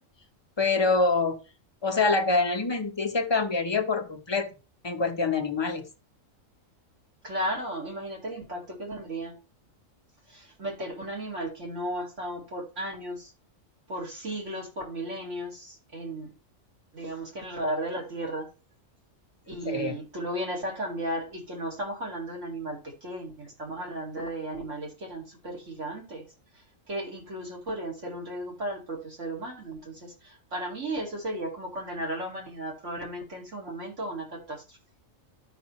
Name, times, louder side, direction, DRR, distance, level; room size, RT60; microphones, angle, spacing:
voice 1, 0.6-1.4 1.8-4.5 4.8-5.9 19.7-20.0, left 3 dB, 25° left, 6 dB, 0.8 m, -25 dB
voice 2, 7.2-9.4 10.3-13.3 13.9-16.3 16.9-18.5 19.5-26.3 26.5-34.8, right 1 dB, 65° right, -1 dB, 2.7 m, -35 dB
12.0 x 5.7 x 3.1 m, 0.32 s
omnidirectional pair, 1.3 m